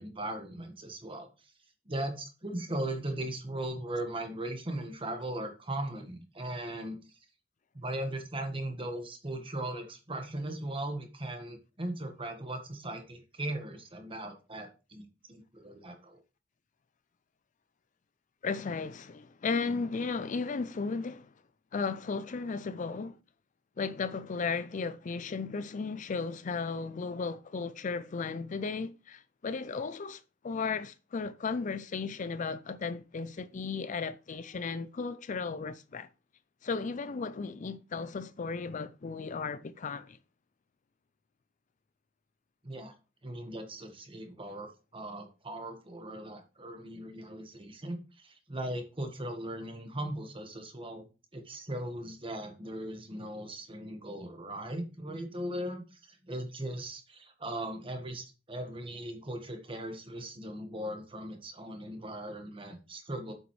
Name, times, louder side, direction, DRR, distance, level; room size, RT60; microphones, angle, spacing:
voice 1, 0.0-1.5 1.8-7.0 7.7-16.2 42.6-42.9 43.2-51.0 51.3-63.3, right 1 dB, 25° right, 1.5 m, -38 dB
voice 2, 18.4-21.3 21.7-23.2 23.8-36.1 36.6-40.2, left 4 dB, 40° left, 0.4 m, -35 dB
8.1 x 7.2 x 3.2 m
head